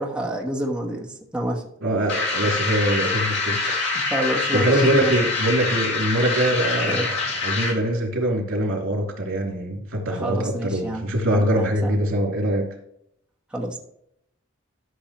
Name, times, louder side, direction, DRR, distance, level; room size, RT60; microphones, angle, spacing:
voice 1, 0.0-1.7 3.9-5.1 6.9-7.1 10.1-11.9 13.5-13.8, right 1 dB, 5° right, -2 dB, 1.2 m, -28 dB
voice 2, 1.8-3.8 4.2-12.7, right 1 dB, 80° right, 1 dB, 2.8 m, -23 dB
sound 1, 2.1-7.9, left 3 dB, 55° left, 2.6 m, -25 dB
13.0 x 6.5 x 3.1 m, 0.73 s
head